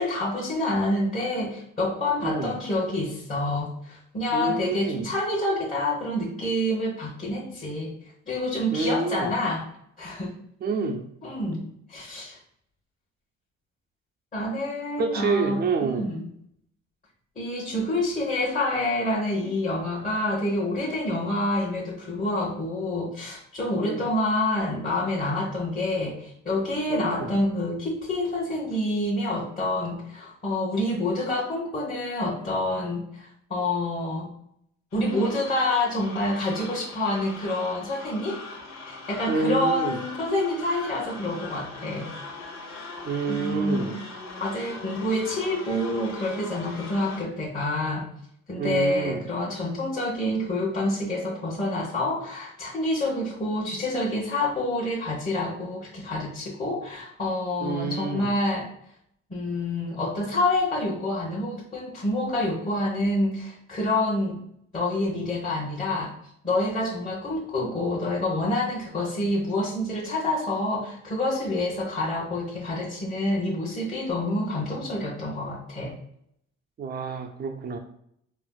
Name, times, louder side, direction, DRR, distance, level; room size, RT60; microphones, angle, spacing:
voice 1, 0.0-7.9 8.3-9.6 10.0-10.3 11.2-11.6 11.9-12.4 14.3-16.3 17.3-34.3 34.9-38.4 38.9-42.1 43.3-43.9 44.4-48.1 48.5-58.7 59.3-64.4 64.7-66.1 66.4-75.9, left 1 dB, 25° left, -6 dB, 1.1 m, -27 dB
voice 2, 2.2-2.6 4.3-5.1 8.7-9.3 10.6-11.1 15.0-16.1 23.8-24.0 26.9-27.3 39.3-40.0 43.0-44.0 48.6-49.3 57.6-58.3 76.8-77.8, right 4 dB, 35° right, 5 dB, 0.5 m, -28 dB
sound 1, 34.9-47.2, left 3 dB, 90° left, 1.0 m, -40 dB
4.4 x 2.0 x 2.2 m, 0.70 s
cardioid pair, 90°, 30 cm